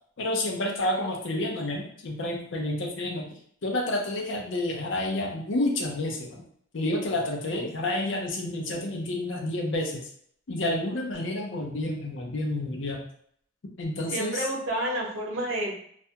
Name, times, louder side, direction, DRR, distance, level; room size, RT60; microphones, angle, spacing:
voice 1, 0.2-3.3 3.6-6.4 6.7-10.0 10.5-13.1 13.8-14.4, left 1 dB, 65° left, 0 dB, 0.6 m, -29 dB
voice 2, 10.9-11.4 14.1-15.7, right 1 dB, 70° right, -2 dB, 0.8 m, -31 dB
2.3 x 2.1 x 2.8 m, 0.64 s
head